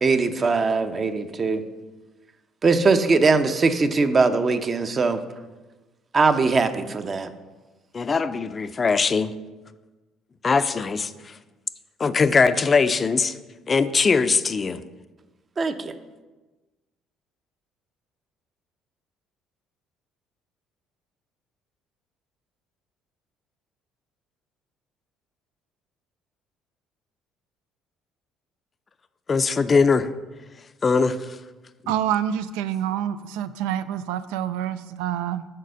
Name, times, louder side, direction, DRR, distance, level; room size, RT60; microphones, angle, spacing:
voice 1, 0.0-1.6 2.6-5.2 6.1-7.3 15.6-15.9, right 4 dB, 40° right, 9 dB, 0.6 m, -21 dB
voice 2, 7.9-9.3 10.4-11.1 12.0-13.3 13.7-14.8 29.3-30.1 30.8-31.2, left 4 dB, 35° left, 12 dB, 0.4 m, -21 dB
voice 3, 31.9-35.5, right 10 dB, 85° right, 13 dB, 0.3 m, -27 dB
6.6 x 4.2 x 6.3 m, 1.2 s
supercardioid pair, 65°, 0 cm